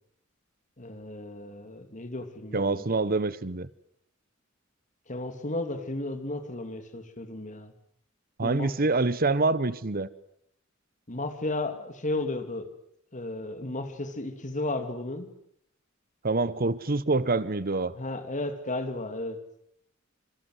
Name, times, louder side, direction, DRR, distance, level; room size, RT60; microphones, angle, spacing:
voice 1, 0.8-2.8 5.1-7.7 8.4-8.7 11.1-12.7 13.1-15.3 17.9-19.4, left 2 dB, 40° left, 3.0 m, -34 dB
voice 2, 2.5-3.7 8.4-10.1 16.2-18.0, right 3 dB, 45° right, 1.1 m, -26 dB
26.5 x 26.5 x 8.1 m
head